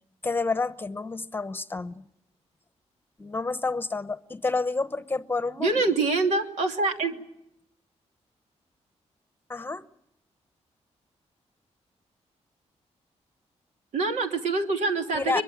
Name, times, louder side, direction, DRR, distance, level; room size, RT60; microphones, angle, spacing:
voice 1, 0.2-2.0 3.2-5.8 9.5-9.8 15.1-15.4, left 3 dB, 20° left, 0.9 m, -29 dB
voice 2, 5.6-7.2 13.9-15.4, right 3 dB, 90° right, 3.0 m, -25 dB
23.0 x 22.0 x 8.9 m
wide cardioid pair, 145°, 12 cm